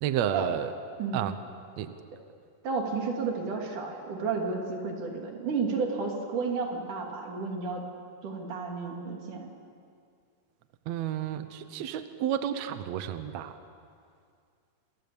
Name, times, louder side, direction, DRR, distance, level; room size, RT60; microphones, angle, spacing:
voice 1, 0.0-0.7 1.1-1.3 1.8-2.0 10.9-13.6, right 10 dB, 75° right, 10 dB, 1.6 m, -31 dB
voice 2, 2.6-7.8 8.2-9.5, right 4 dB, 55° right, 1 dB, 4.2 m, -32 dB
29.5 x 23.0 x 7.1 m, 2.3 s
omnidirectional pair, 4.4 m